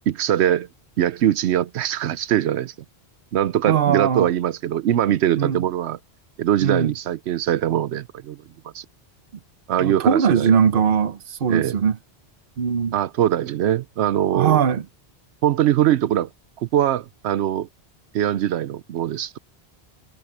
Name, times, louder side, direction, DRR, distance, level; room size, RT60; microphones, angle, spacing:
voice 1, 0.1-0.7 1.0-2.7 3.3-6.0 6.4-8.4 8.7-8.8 9.7-10.5 11.5-11.7 12.9-14.6 15.4-16.3 16.6-17.7 18.1-19.4, right 11 dB, 85° right, 0.9 m, -22 dB
voice 2, 3.7-4.3 5.4-5.6 6.6-6.9 9.8-12.0 12.6-13.0 14.3-14.8, right 7 dB, 60° right, 1.0 m, -20 dB
omnidirectional pair, 1.1 m